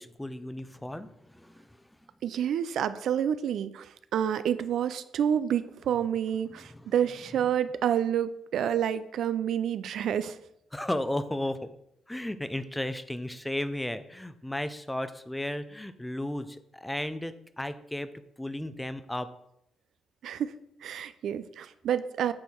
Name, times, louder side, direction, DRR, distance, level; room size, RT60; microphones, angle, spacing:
voice 1, 0.0-1.8 6.5-6.9 10.7-11.7 12.1-18.1 18.4-19.3, left 1 dB, 10° left, 12 dB, 0.5 m, -34 dB
voice 2, 2.2-10.4 20.2-20.5 20.8-22.3, right 9 dB, 70° right, 13 dB, 0.4 m, -29 dB
8.4 x 4.6 x 4.4 m, 0.78 s
cardioid pair, 90°, 0 cm